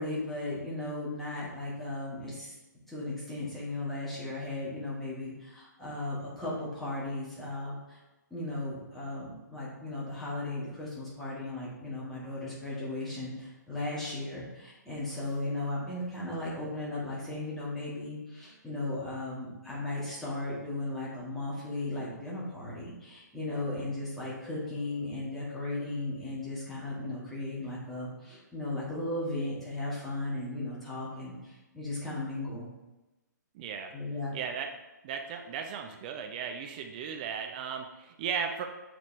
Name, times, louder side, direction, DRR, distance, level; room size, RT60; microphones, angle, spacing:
voice 1, 0.0-2.5 2.9-8.0 8.3-32.7 33.9-34.3, left 2 dB, ahead, -9 dB, 2.0 m, -36 dB
voice 2, 33.5-33.9 34.3-34.7 35.0-38.6, right 7 dB, 25° right, 5 dB, 0.5 m, -36 dB
7.4 x 4.9 x 3.3 m, 1.0 s
figure-of-eight pair, 125°, 10 cm